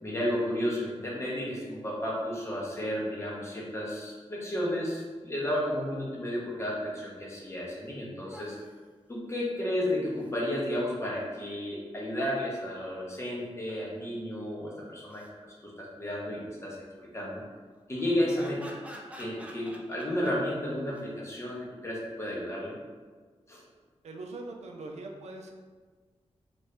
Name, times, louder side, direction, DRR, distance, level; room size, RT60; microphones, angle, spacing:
voice 1, 0.0-8.6 9.1-15.2 15.6-16.8 17.1-17.4 17.9-18.7 19.2-22.8 23.5-23.6, left 1 dB, 25° left, -5 dB, 0.9 m, -32 dB
sound 1, 7.4-7.5 7.7-7.8 8.2-8.8 9.8-10.3 13.5-14.1 14.9-15.3 17.9-20.3 20.9-21.1, equal, 10° right, 0.4 m, -48 dB
voice 2, 24.0-25.5, right 2 dB, 85° right, 1 dB, 0.4 m, -41 dB
2.7 x 2.6 x 3.3 m, 1.5 s
wide cardioid pair, 105°, 11 cm